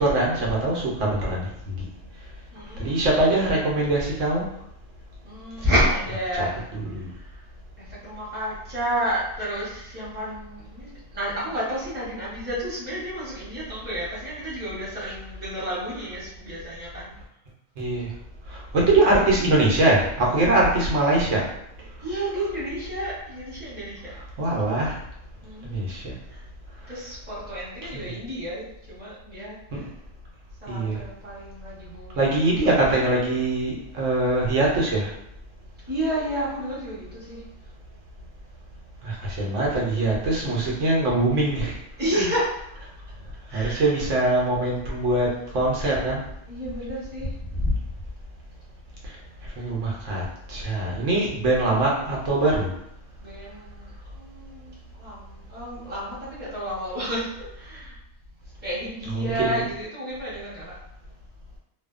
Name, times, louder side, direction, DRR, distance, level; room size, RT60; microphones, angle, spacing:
voice 1, 0.0-1.8 2.8-4.5 6.4-6.5 6.7-7.1 17.8-18.1 18.5-21.5 24.4-25.0 25.6-26.1 27.9-28.1 29.7-29.9 30.7-31.0 32.2-35.1 39.0-41.7 42.1-42.3 43.5-45.3 45.5-46.2 49.6-50.2 50.5-52.7 59.1-59.6, right 2 dB, 75° right, -3 dB, 1.0 m, -23 dB
voice 2, 2.5-3.2 5.2-7.4 7.8-17.1 22.0-24.1 25.4-25.8 26.3-26.4 26.9-29.9 30.6-32.5 35.9-37.4 41.9-42.8 43.5-44.0 46.5-47.7 53.2-58.0 58.6-60.7, equal, 10° right, -9 dB, 0.8 m, -31 dB
2.6 x 2.1 x 2.4 m, 0.77 s
omnidirectional pair, 1.3 m